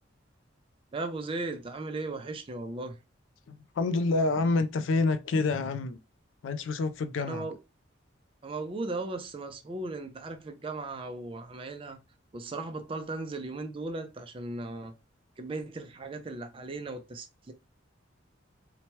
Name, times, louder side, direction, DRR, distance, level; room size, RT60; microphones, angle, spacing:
voice 1, 0.9-3.0 7.3-7.6 8.4-12.0 12.3-14.9 15.4-17.5, right 2 dB, 25° right, 0.4 m, -37 dB
voice 2, 3.5-6.0 6.4-7.5, left 3 dB, 75° left, 0.4 m, -28 dB
2.8 x 2.2 x 2.9 m
head